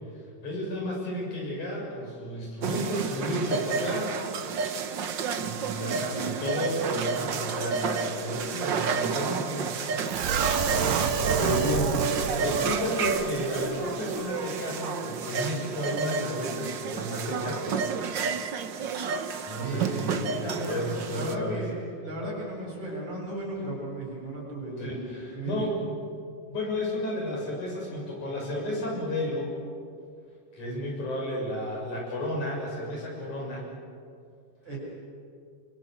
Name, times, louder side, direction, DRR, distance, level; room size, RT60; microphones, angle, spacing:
voice 1, 0.4-4.1 4.5-4.9 5.4-9.7 10.1-10.5 11.4-12.0 12.3-17.8 19.5-21.6 24.8-26.0 26.5-29.6 30.5-33.6, left 1 dB, 65° left, -2 dB, 8.3 m, -32 dB
sound 1, 2.6-21.3, right 5 dB, 65° right, 1.1 m, -31 dB
sound 2, 10.1-13.3 13.5-13.7 14.1-14.2, right 6 dB, 80° right, 3.2 m, -27 dB
voice 2, 19.6-25.0 25.3-25.7 34.6-34.8, right 1 dB, 35° right, -3 dB, 8.3 m, -35 dB
28.5 x 25.0 x 8.1 m, 2.3 s
omnidirectional pair, 3.7 m